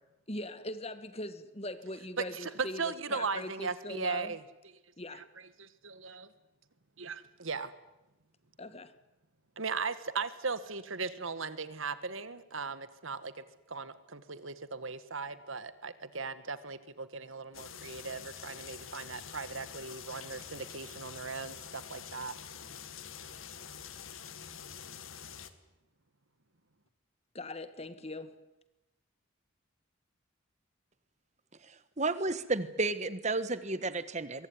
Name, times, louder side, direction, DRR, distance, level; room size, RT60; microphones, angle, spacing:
voice 1, 0.3-4.3 5.0-5.3 8.6-8.9 27.3-28.4, left 1 dB, 30° left, 1.5 m, -41 dB
voice 2, 2.2-4.4 5.1-6.3 7.0-7.7 9.6-13.3 13.7-22.3, right 4 dB, 75° right, 1.7 m, -38 dB
sound 1, 17.5-25.5, left 7 dB, 80° left, 2.0 m, -46 dB
voice 3, 31.6-34.5, right 3 dB, 35° right, 1.5 m, -32 dB
23.0 x 23.0 x 9.8 m
head